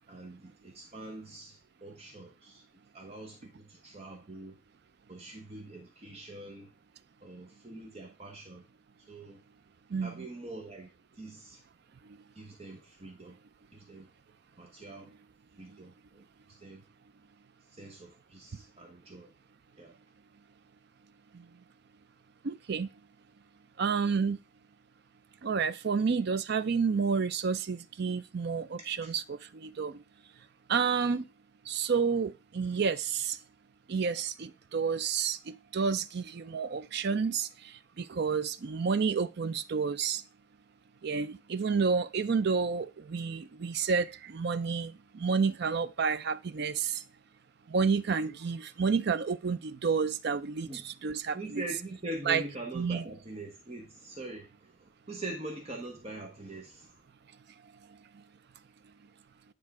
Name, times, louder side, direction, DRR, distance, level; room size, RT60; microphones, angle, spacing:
voice 1, 0.1-2.6 2.9-4.6 5.1-6.7 7.2-8.6 9.1-9.4 10.0-10.9 11.2-11.6 12.3-13.4 13.7-14.1 14.6-15.1 15.6-16.8 17.7-19.3 19.7-20.0 28.8-29.1 50.6-50.9 51.3-57.0, right 2 dB, 30° right, 1.0 m, -44 dB
voice 2, 9.9-10.3 21.3-21.4 22.4-22.9 23.8-24.4 25.4-30.0 30.7-31.2 31.7-33.4 33.9-37.5 38.0-40.2 41.0-47.0 47.7-51.6 52.3-52.4 52.7-53.0, right 5 dB, 50° right, 0.4 m, -30 dB
9.6 x 3.6 x 4.8 m
head